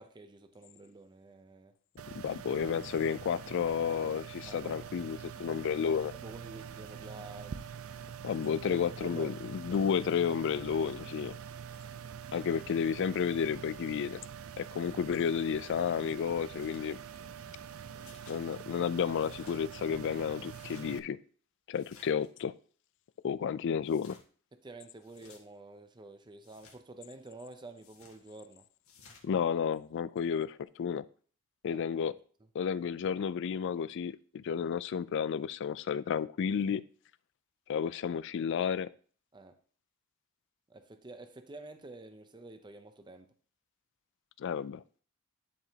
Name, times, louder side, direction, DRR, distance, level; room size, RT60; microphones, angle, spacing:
voice 1, 0.0-1.8 4.5-5.6 6.1-7.6 8.7-9.4 17.9-18.3 24.5-28.7 31.7-32.2 39.3-39.6 40.7-43.3, right 2 dB, 20° right, 0.6 m, -50 dB
sound 1, 2.0-21.0, right 7 dB, 75° right, 0.5 m, -45 dB
voice 2, 2.2-6.1 8.2-11.4 12.3-14.2 14.6-17.0 18.3-21.2 21.7-22.5 23.2-24.2 29.2-31.0 31.6-32.1 32.5-36.8 37.7-38.9 44.4-44.8, left 7 dB, 60° left, 0.3 m, -32 dB
sound 2, 16.5-16.8 18.0-18.4 19.1-19.6 20.4-20.9 21.7-22.3 23.8-24.2 25.0-25.4 26.4-26.8 27.8-28.2 28.8-29.2, left 5 dB, 80° left, 1.7 m, -57 dB
11.0 x 4.9 x 2.8 m
head